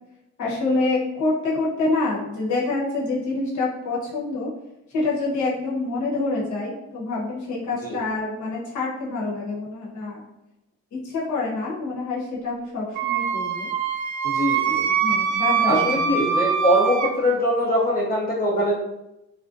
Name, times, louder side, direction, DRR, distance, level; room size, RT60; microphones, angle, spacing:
voice 1, 0.4-4.5 4.9-10.2 10.9-13.7 14.9-16.4, left 3 dB, 70° left, -6 dB, 1.0 m, -27 dB
Wind instrument woodwind instrument, 12.9-17.1, right 7 dB, 70° right, 0.4 m, -23 dB
voice 2, 14.3-14.8 15.7-18.7, equal, 30° left, -3 dB, 0.6 m, -22 dB
2.5 x 2.1 x 2.5 m, 0.89 s
cardioid pair, 90°, 30 cm